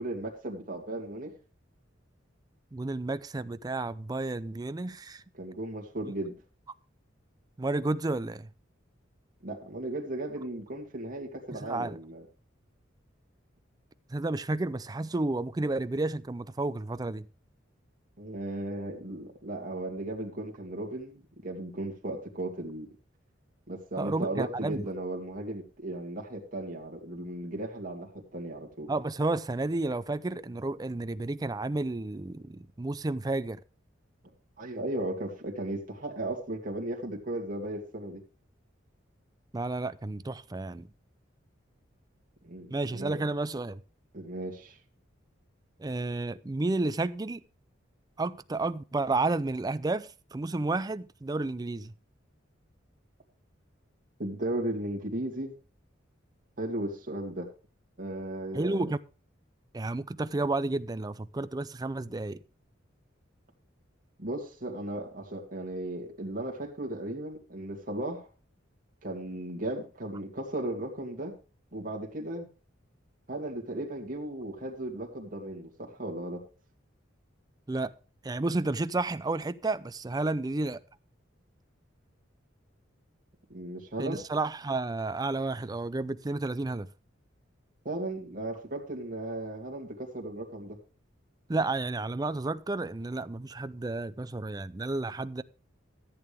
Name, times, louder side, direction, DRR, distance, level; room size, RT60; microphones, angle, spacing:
voice 1, 0.0-1.3 5.3-6.3 9.4-12.2 18.2-22.9 23.7-28.9 34.6-38.2 42.4-43.2 44.1-44.8 54.2-55.5 56.6-57.5 58.0-58.9 64.2-68.3 69.0-71.3 71.7-72.5 73.3-76.4 83.5-84.2 87.8-90.8, right 1 dB, 45° right, 2.5 m, -36 dB
voice 2, 2.7-5.2 7.6-8.5 11.5-12.0 14.1-17.3 24.0-24.9 28.9-33.6 39.5-40.9 42.7-43.8 45.8-47.4 48.2-51.9 58.5-59.0 59.7-62.4 77.7-77.9 78.2-80.8 84.0-86.9 91.5-95.4, right 2 dB, 20° right, 0.4 m, -31 dB
14.0 x 8.7 x 3.5 m
head